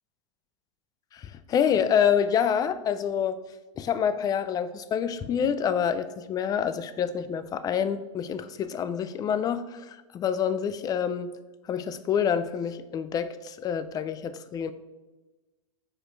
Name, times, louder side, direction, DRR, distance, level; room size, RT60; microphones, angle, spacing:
voice 1, 1.1-3.4 3.8-11.3 11.7-14.7, left 8 dB, 25° left, 13 dB, 0.3 m, -27 dB
5.1 x 4.2 x 4.5 m, 1.2 s
hypercardioid pair, 110°, 17 cm